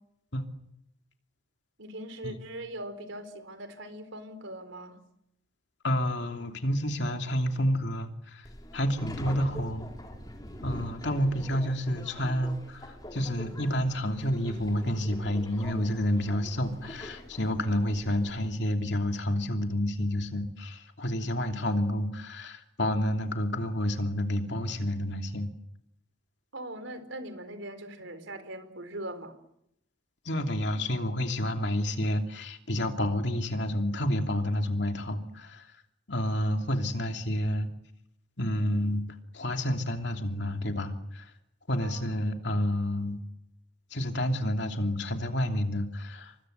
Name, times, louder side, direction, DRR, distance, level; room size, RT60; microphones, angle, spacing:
voice 1, 1.8-5.0 26.5-29.4 41.8-42.2, right 1 dB, 75° right, 10 dB, 4.3 m, -41 dB
voice 2, 5.8-8.5 8.7-9.9 10.6-25.5 30.2-35.7 36.1-37.7 38.4-39.0 39.3-41.3 41.7-43.2 43.9-46.3, left 1 dB, 60° left, 5 dB, 2.9 m, -29 dB
Subway metro underground, 8.4-18.5, equal, 20° left, 4.5 m, -44 dB
29.5 x 25.0 x 8.1 m, 0.77 s
head